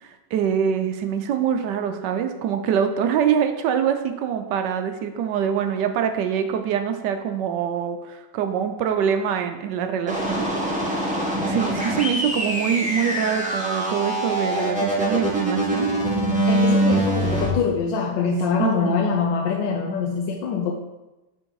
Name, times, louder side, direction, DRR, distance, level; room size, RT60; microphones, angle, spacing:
voice 1, 0.0-10.5 10.9-11.1 11.4-15.9 18.6-19.0, right 8 dB, 75° right, 7 dB, 1.2 m, -24 dB
sound 1, 10.1-17.5, right 1 dB, 5° right, 1.0 m, -24 dB
voice 2, 16.5-20.7, left 5 dB, 85° left, 2 dB, 1.3 m, -24 dB
6.2 x 4.5 x 4.7 m, 1.0 s
omnidirectional pair, 2.0 m